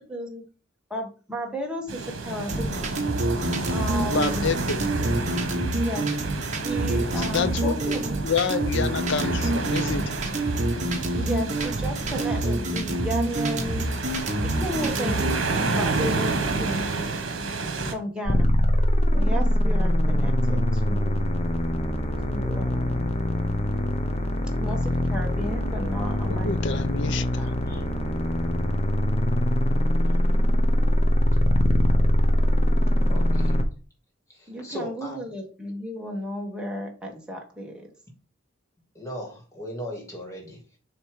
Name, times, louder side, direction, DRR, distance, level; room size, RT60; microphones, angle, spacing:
voice 1, 0.1-0.4 0.9-3.1 3.7-4.5 5.0-5.2 5.8-6.1 6.6-8.2 8.9-9.0 11.2-13.9 14.4-17.1 17.9-18.5 19.1-21.3 22.3-23.2 24.6-27.5 34.5-37.9, equal, 5° right, 1.5 m, -34 dB
sound 1, 1.9-17.9, right 3 dB, 70° right, 1.2 m, -30 dB
sound 2, 2.5-15.4, right 2 dB, 35° right, 1.2 m, -27 dB
voice 2, 4.0-4.9 6.8-8.0 8.2-10.2 26.3-27.5, left 5 dB, 60° left, 0.6 m, -29 dB
sound 3, 18.3-33.6, left 1 dB, 30° left, 0.9 m, -23 dB
voice 3, 33.0-33.6 34.3-35.2 38.9-40.6, equal, 15° left, 2.2 m, -38 dB
7.3 x 3.1 x 5.0 m
head